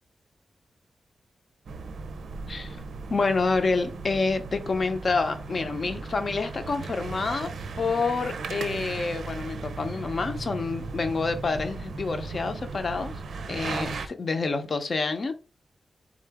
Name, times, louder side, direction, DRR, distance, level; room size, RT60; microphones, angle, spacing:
sound 1, 1.7-14.1, right 4 dB, 90° right, 0.5 m, -37 dB
voice 1, 3.1-7.5 7.8-13.2 13.5-15.3, left 4 dB, 45° left, 0.7 m, -28 dB
3.8 x 3.7 x 3.5 m
wide cardioid pair, 155°, 0 cm